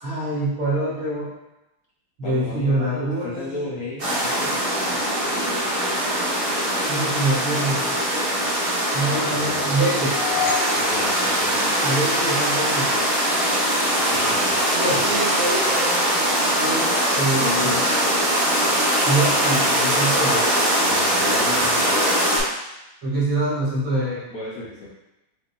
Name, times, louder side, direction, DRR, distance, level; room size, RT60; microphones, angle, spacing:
voice 1, 0.0-1.3 2.2-3.7 6.9-7.9 8.9-10.2 11.8-12.9 14.7-16.1 16.6-17.8 19.0-20.5 23.0-24.2, right 2 dB, 80° right, -7 dB, 2.6 m, -25 dB
voice 2, 2.2-4.6 9.0-9.8 10.7-11.7 14.0-15.0 17.4-17.8 20.8-22.0 24.3-24.9, left 2 dB, 60° left, -5 dB, 0.9 m, -34 dB
sound 1, 4.0-22.4, equal, 40° right, 2.0 m, -21 dB
sound 2, 9.9-12.2, left 5 dB, 90° left, 1.5 m, -30 dB
7.7 x 2.6 x 2.2 m, 0.93 s
omnidirectional pair, 2.3 m